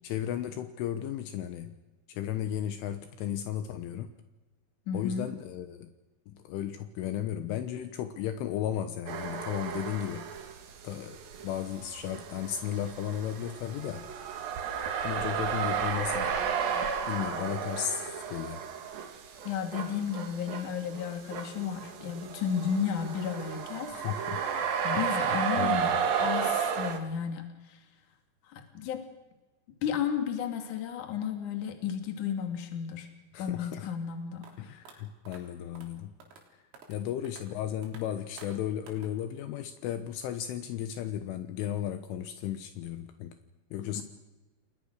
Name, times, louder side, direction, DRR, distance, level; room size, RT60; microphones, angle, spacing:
voice 1, 0.0-1.7 2.1-4.1 4.9-5.9 6.3-10.3 10.8-11.2 11.4-14.1 15.0-16.3 17.1-18.6 23.9-24.4 24.9-26.0 33.3-33.9 34.6-36.1 36.9-43.4 43.7-44.0, left 10 dB, 75° left, 8 dB, 3.5 m, -35 dB
voice 2, 4.9-5.3 19.4-24.1 24.8-25.9 26.2-27.8 28.5-29.1 29.8-33.1 33.4-34.5 43.9-44.0, left 7 dB, 45° left, 5 dB, 3.3 m, -33 dB
sound 1, 9.1-10.6 10.9-27.0, right 7 dB, 55° right, 3.2 m, -33 dB
sound 2, 34.4-34.5 34.9-35.0 35.3-35.4 35.8-35.9 36.2-36.4 36.7-37.0 37.3-37.4 37.8-38.0 38.4-38.5 38.9-39.1, right 5 dB, 75° right, 6.1 m, -51 dB
29.0 x 21.0 x 6.4 m, 1.1 s
omnidirectional pair, 6.0 m